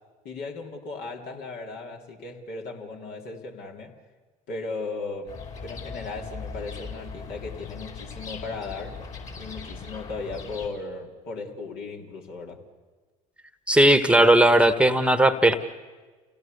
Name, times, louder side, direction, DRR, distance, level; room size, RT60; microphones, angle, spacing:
voice 1, 0.2-3.9 4.5-9.0 9.4-12.6, left 3 dB, 65° left, 1 dB, 3.4 m, -36 dB
sound 1, 5.3-10.7, left 5 dB, 40° left, 5.1 m, -39 dB
voice 2, 13.7-15.5, right 1 dB, 5° right, 10 dB, 1.3 m, -17 dB
29.0 x 17.5 x 6.8 m, 1.4 s
hypercardioid pair, 70°, 18 cm